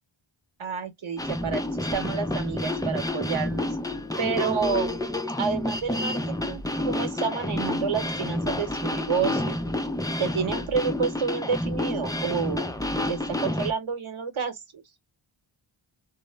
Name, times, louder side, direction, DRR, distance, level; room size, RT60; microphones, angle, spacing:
voice 1, 0.6-1.6 1.9-3.7 4.2-5.0 5.4-9.6 10.2-12.7 12.9-14.8, right 6 dB, 70° right, 0.9 m, -29 dB
sound 1, 1.2-13.7, left 1 dB, 10° left, 0.4 m, -29 dB
2.0 x 2.0 x 3.2 m
cardioid pair, 50°, 50 cm